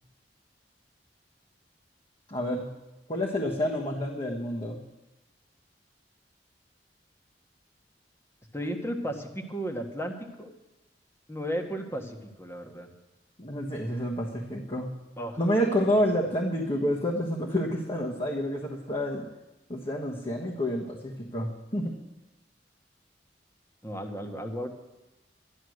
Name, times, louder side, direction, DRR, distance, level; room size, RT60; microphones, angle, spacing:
voice 1, 2.3-2.7 3.1-4.8 13.4-14.9 15.4-19.2 19.7-21.9, equal, 30° left, -2 dB, 1.3 m, -29 dB
voice 2, 8.5-10.5 11.3-12.9 15.2-15.4 23.8-24.7, equal, 15° left, 4 dB, 1.4 m, -34 dB
12.0 x 11.0 x 6.4 m, 1.0 s
head